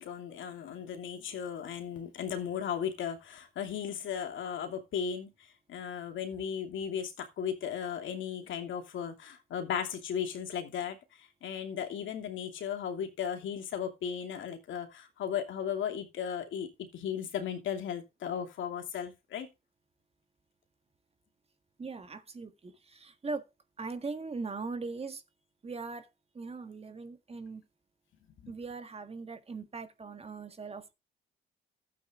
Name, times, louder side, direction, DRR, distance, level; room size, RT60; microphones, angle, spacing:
voice 1, 0.0-5.3 5.7-11.0 11.4-16.7 16.9-19.5 28.4-28.5, left 8 dB, 75° left, 2.7 m, -36 dB
voice 2, 21.8-23.4 23.8-25.2 25.6-26.1 26.4-27.6 28.5-30.9, right 4 dB, 30° right, 1.7 m, -40 dB
12.0 x 8.5 x 3.7 m
cardioid pair, 90°, 20 cm